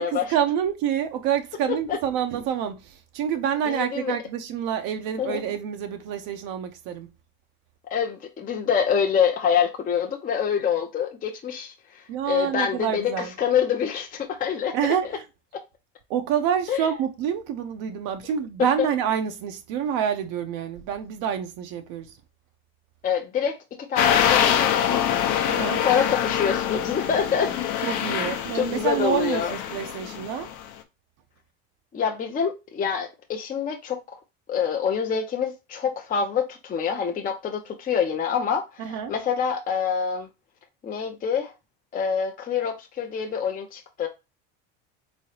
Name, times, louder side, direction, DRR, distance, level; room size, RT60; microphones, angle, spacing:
voice 1, 0.0-7.1 12.1-13.3 14.7-15.2 16.1-22.1 25.5-25.8 27.8-30.5 38.8-39.1, right 8 dB, 65° right, 0.6 m, -27 dB
voice 2, 1.7-2.0 3.6-4.2 5.2-5.4 7.9-14.8 15.5-15.6 16.7-16.8 18.8-18.9 23.0-25.1 25.8-27.5 28.2-28.3 28.5-29.6 31.9-34.2 34.5-40.3 40.8-41.5 41.9-44.1, left 7 dB, 25° left, 0.5 m, -26 dB
sound 1, 24.0-30.6, left 9 dB, 65° left, 0.7 m, -25 dB
3.7 x 3.1 x 2.7 m
supercardioid pair, 110°, 34 cm